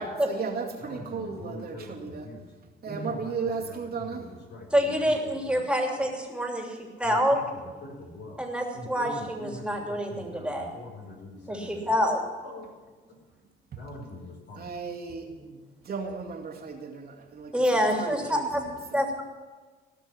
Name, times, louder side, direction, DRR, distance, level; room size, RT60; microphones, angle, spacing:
voice 1, 0.0-2.3 2.8-4.3 13.7-13.8 14.6-19.0, right 5 dB, 50° right, 0 dB, 2.3 m, -36 dB
voice 2, 0.8-2.4 2.9-3.3 4.0-4.1 4.5-4.7 6.0-6.1 7.0-7.2 7.8-8.4 8.7-11.9 12.4-12.7 13.8-15.0 15.2-15.3, left 1 dB, 60° left, 1 dB, 3.8 m, -42 dB
voice 3, 4.7-7.4 8.4-10.7 11.5-12.2 17.5-18.6 18.9-19.2, equal, 5° right, 1 dB, 3.0 m, -26 dB
17.5 x 6.2 x 9.9 m, 1.4 s
cardioid pair, 90°, 20 cm